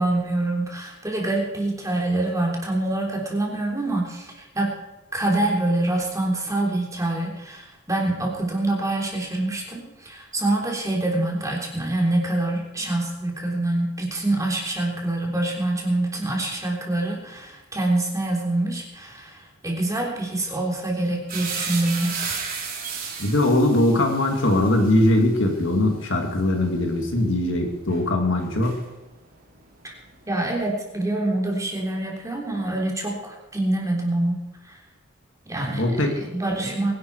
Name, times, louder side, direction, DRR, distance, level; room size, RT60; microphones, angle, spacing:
voice 1, 0.0-4.7 5.1-22.4 29.8-29.9 30.3-34.4 34.7-34.8 35.5-36.9, right 2 dB, 15° right, -1 dB, 3.5 m, -25 dB
sound 1, 21.3-29.3 29.5-30.7, right 6 dB, 40° right, 3.4 m, -35 dB
voice 2, 23.2-28.8 35.8-36.2, left 1 dB, 65° left, 3 dB, 2.6 m, -21 dB
23.0 x 11.0 x 4.9 m, 1.0 s
head